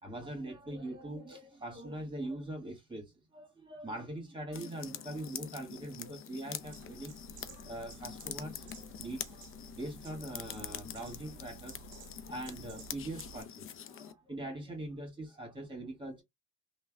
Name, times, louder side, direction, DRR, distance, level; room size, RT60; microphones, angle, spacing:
voice 1, 0.0-7.3 7.6-12.0 12.3-16.2, right 1 dB, 15° right, 1.4 m, -42 dB
sound 1, 4.5-14.1, left 9 dB, 45° left, 0.5 m, -45 dB
sound 2, 6.6-13.4, right 5 dB, 85° right, 0.5 m, -53 dB
3.2 x 2.2 x 2.2 m
cardioid pair, 90°, 30 cm